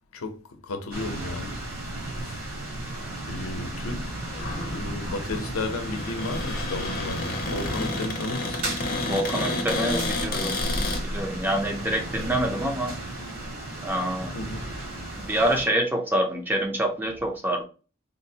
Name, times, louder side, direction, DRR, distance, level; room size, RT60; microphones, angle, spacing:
voice 1, 0.1-1.5 2.2-2.4 3.3-4.1 4.6-8.6 14.3-14.7, left 2 dB, 80° left, 0.6 m, -34 dB
sound 1, 0.9-15.7, right 1 dB, 70° right, 1.6 m, -34 dB
Cupboard open or close, 4.3-11.0, left 3 dB, 40° left, 0.6 m, -31 dB
voice 2, 9.0-10.6 11.0-13.0 13.8-14.3 15.2-17.6, right 1 dB, 10° right, 0.4 m, -26 dB
3.8 x 2.1 x 2.7 m
head